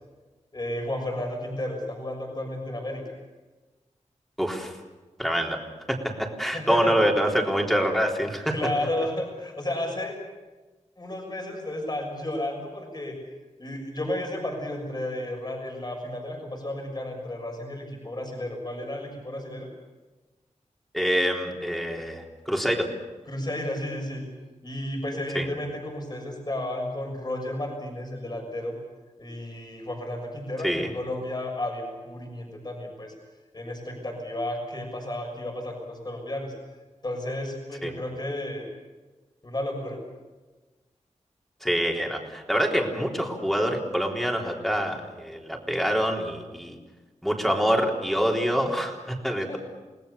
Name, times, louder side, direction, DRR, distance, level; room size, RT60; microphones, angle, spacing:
voice 1, 0.5-3.1 6.5-7.0 8.5-10.2 11.0-13.1 13.6-19.7 23.3-24.2 24.6-28.7 29.2-33.1 33.5-36.5 37.0-38.7 39.4-40.0 49.5-49.6, left 1 dB, 35° left, 2 dB, 6.4 m, -32 dB
voice 2, 4.4-4.7 5.2-5.6 5.9-8.6 20.9-22.9 25.3-25.5 30.6-30.9 37.8-37.9 41.6-46.8 47.2-49.6, equal, ahead, 1 dB, 3.8 m, -26 dB
29.5 x 19.0 x 6.9 m, 1.2 s
wide cardioid pair, 95°, 12 cm